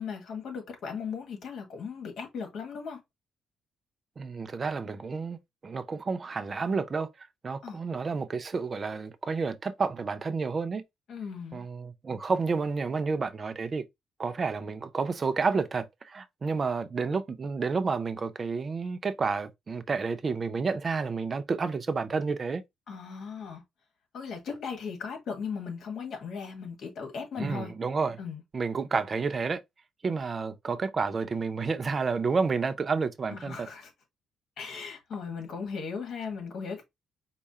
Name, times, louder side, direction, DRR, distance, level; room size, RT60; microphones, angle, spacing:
voice 1, 0.0-3.0 7.6-7.8 11.1-11.6 22.9-23.6 24.1-27.7 28.2-28.4 33.3-33.9 34.6-36.8, left 6 dB, 65° left, 1.8 m, -37 dB
voice 2, 4.2-10.8 11.5-13.8 14.2-22.6 27.4-28.2 28.5-29.6 30.0-33.7, right 4 dB, 35° right, 0.7 m, -30 dB
4.8 x 2.2 x 4.2 m
cardioid pair, 90°, 0 cm